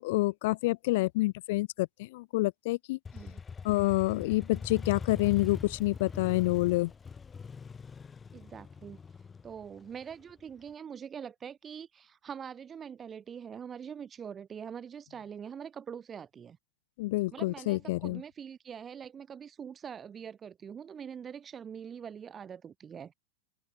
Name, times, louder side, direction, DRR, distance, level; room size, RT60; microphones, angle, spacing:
voice 1, 0.0-3.0 3.6-6.9 17.0-18.2, left 20 dB, 50° left, 1.4 m, -28 dB
Motorcycle, 3.0-10.7, left 5 dB, 15° left, 1.3 m, -42 dB
voice 2, 8.3-16.6 17.3-23.1, right 7 dB, 20° right, 8.0 m, -44 dB
open air
figure-of-eight pair, 90°, 0 cm